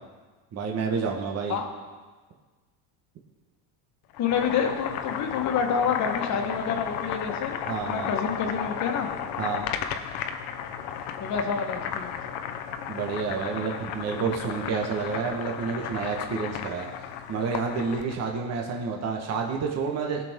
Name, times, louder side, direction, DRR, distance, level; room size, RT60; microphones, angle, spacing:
voice 1, 0.5-1.6 7.7-8.1 9.4-9.6 12.9-16.9 17.3-20.3, right 5 dB, 35° right, 1 dB, 1.3 m, -29 dB
Boiling, 4.1-18.2, left 8 dB, 65° left, 0.9 m, -34 dB
voice 2, 4.2-9.1 11.2-12.2, left 6 dB, 40° left, 3 dB, 1.6 m, -28 dB
17.0 x 6.0 x 3.6 m, 1.4 s
supercardioid pair, 130°, 43 cm